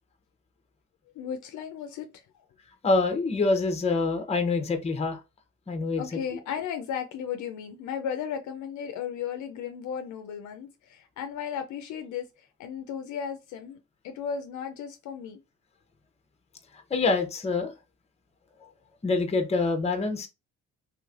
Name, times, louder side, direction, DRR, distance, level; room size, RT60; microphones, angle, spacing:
voice 1, 1.2-2.2 6.0-12.3 12.6-13.8 14.0-15.4, left 8 dB, 75° left, 0.5 m, -35 dB
voice 2, 2.8-5.2 5.7-6.2 16.9-17.7 19.0-20.3, left 3 dB, 20° left, 0.7 m, -26 dB
3.3 x 3.1 x 2.4 m
cardioid pair, 90°, 30 cm